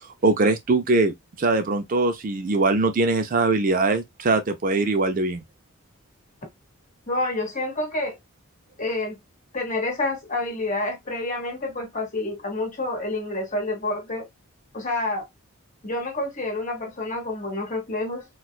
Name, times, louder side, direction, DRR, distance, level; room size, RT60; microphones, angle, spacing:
voice 1, 0.2-5.4, right 3 dB, 40° right, 0.4 m, -22 dB
voice 2, 7.1-8.2 8.8-9.2 9.5-14.3 14.7-15.2 15.8-18.2, left 2 dB, 35° left, 1.5 m, -28 dB
4.2 x 2.3 x 2.3 m
head